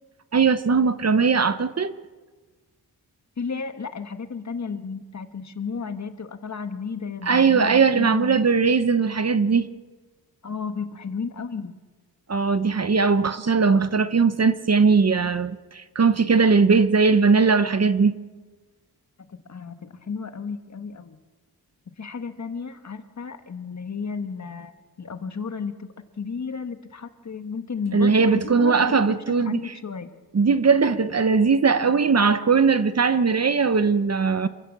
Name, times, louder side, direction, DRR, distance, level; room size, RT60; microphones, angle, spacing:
voice 1, 0.3-2.0 7.2-9.7 12.3-18.2 27.9-29.6 30.3-34.5, right 5 dB, 40° right, 0.9 m, -19 dB
voice 2, 3.4-8.4 10.4-11.7 19.3-21.2 22.0-24.7 25.0-30.1, left 5 dB, 45° left, 1.4 m, -33 dB
27.0 x 15.5 x 7.3 m
wide cardioid pair, 120°, 39 cm